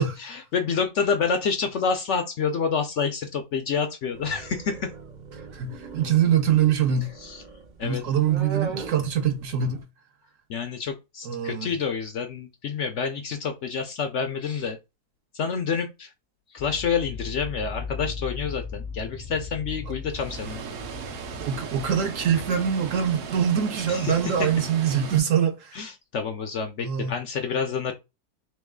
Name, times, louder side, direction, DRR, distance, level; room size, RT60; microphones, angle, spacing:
voice 1, 0.0-4.9 7.2-7.4 7.8-8.0 10.5-14.8 15.3-16.1 16.5-20.6 23.9-24.2 25.7-27.9, left 6 dB, 60° left, 0.8 m, -28 dB
sound 1, 4.1-9.8, right 4 dB, 45° right, 0.6 m, -39 dB
voice 2, 5.5-7.1 7.8-9.8 11.2-11.7 21.4-25.8 26.8-27.1, right 8 dB, 65° right, 1.0 m, -24 dB
sound 2, 16.6-23.2, left 4 dB, 30° left, 0.4 m, -38 dB
Water, 20.1-25.2, right 6 dB, 85° right, 1.3 m, -37 dB
3.1 x 3.0 x 3.6 m
omnidirectional pair, 1.6 m